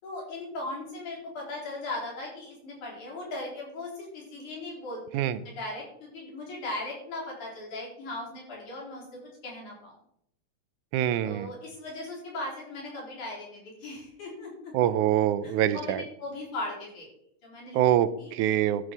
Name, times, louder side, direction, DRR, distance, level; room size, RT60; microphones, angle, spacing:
voice 1, 0.0-9.9 11.2-14.7 15.4-17.1 17.4-17.8 18.2-18.3, left 2 dB, 75° left, -3 dB, 5.4 m, -38 dB
voice 2, 10.9-11.5 14.7-16.0 17.7-18.9, right 11 dB, 80° right, 14 dB, 2.0 m, -25 dB
12.5 x 6.5 x 6.0 m, 0.72 s
omnidirectional pair, 3.5 m